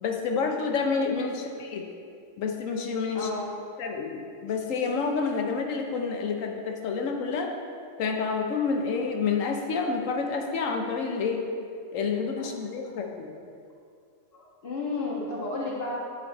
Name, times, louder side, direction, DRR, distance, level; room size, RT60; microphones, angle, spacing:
voice 1, 0.0-1.9 2.4-3.3 3.8-7.5 8.0-11.4 11.9-13.3, left 5 dB, 80° left, 2 dB, 1.2 m, -29 dB
voice 2, 3.1-3.5 12.4-12.5 14.3-16.0, left 2 dB, 50° left, -4 dB, 1.7 m, -32 dB
9.9 x 4.9 x 4.1 m, 2.3 s
omnidirectional pair, 1.3 m